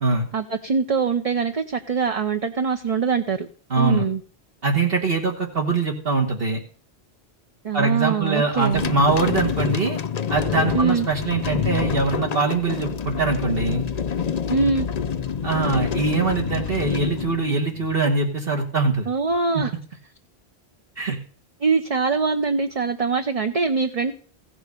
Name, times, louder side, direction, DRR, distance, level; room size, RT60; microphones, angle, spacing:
voice 1, 0.3-3.5 3.8-4.2 7.6-8.8 10.7-11.1 14.5-14.9 19.1-19.7 21.6-24.1, right 5 dB, 40° right, 6 dB, 0.8 m, -23 dB
voice 2, 3.7-4.1 4.6-6.6 7.7-10.0 10.3-13.8 15.4-19.1 19.5-19.6 21.0-21.2, right 3 dB, 60° right, 1 dB, 1.8 m, -23 dB
sound 1, 8.6-18.0, left 7 dB, 45° left, 0.6 m, -27 dB
15.5 x 6.2 x 6.6 m, 0.42 s
omnidirectional pair, 1.1 m